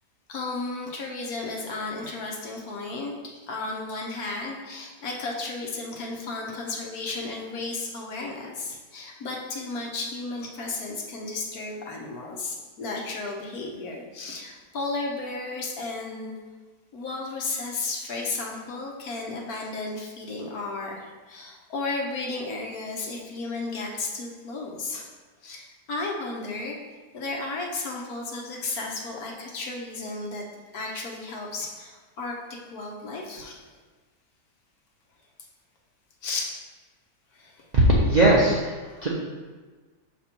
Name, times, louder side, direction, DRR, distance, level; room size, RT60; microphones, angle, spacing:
voice 1, 0.3-3.1 3.5-16.3 16.9-25.1 25.4-26.8 27.1-30.4 30.7-32.4 32.7-33.7 36.2-36.5 37.3-37.6, left 3 dB, 65° left, -1 dB, 1.3 m, -33 dB
voice 2, 37.7-38.8 39.0-39.1, right 1 dB, 45° right, -5 dB, 0.5 m, -19 dB
6.7 x 3.4 x 4.4 m, 1.3 s
omnidirectional pair, 1.8 m